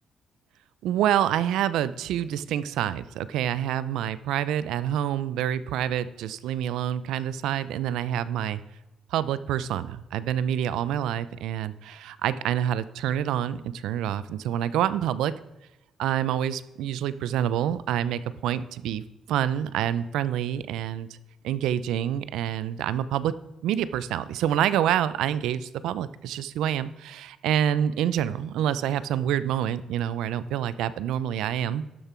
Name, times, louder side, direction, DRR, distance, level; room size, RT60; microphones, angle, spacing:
voice 1, 0.8-8.6 9.1-15.3 16.0-21.1 21.4-23.3 23.6-31.8, right 10 dB, 85° right, 16 dB, 0.5 m, -27 dB
12.0 x 6.8 x 4.4 m, 1.0 s
cardioid pair, 90°, 0 cm